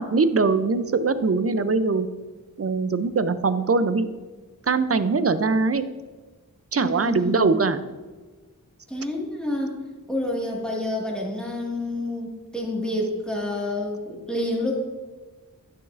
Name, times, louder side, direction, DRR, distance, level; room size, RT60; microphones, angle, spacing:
voice 1, 0.0-2.1 2.6-4.1 4.7-5.8 6.7-7.8, right 4 dB, 45° right, 12 dB, 0.5 m, -22 dB
voice 2, 6.8-7.5 8.9-9.8 10.1-14.7, left 1 dB, 5° left, -2 dB, 1.8 m, -28 dB
9.5 x 6.3 x 2.5 m, 1.3 s
wide cardioid pair, 45°, 34 cm